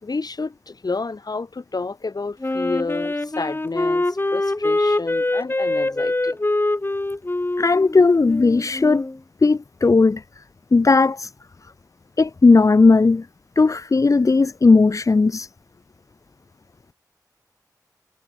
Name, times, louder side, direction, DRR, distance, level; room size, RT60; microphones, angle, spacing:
voice 1, 0.0-6.4, left 3 dB, 65° left, 6.2 m, -30 dB
Wind instrument woodwind instrument, 2.4-9.2, left 2 dB, 30° left, 2.6 m, -24 dB
voice 2, 7.6-9.1 9.4-10.2 10.7-11.3 12.2-13.3 13.6-15.5, left 3 dB, 50° left, 0.6 m, -16 dB
wide cardioid pair, 70°, 7 cm